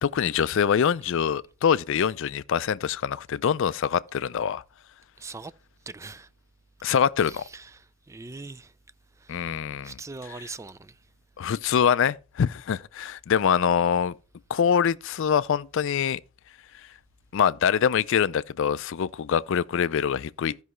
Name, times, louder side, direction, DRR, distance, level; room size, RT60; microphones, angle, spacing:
voice 1, 0.0-4.6 6.8-7.4 9.3-9.9 11.4-14.1 14.5-16.2 17.3-20.6, left 7 dB, 65° left, 0.4 m, -24 dB
voice 2, 5.2-5.5 5.9-6.3 7.2-8.7 9.2-11.0, right 3 dB, 15° right, 0.3 m, -42 dB
14.5 x 5.5 x 3.1 m
head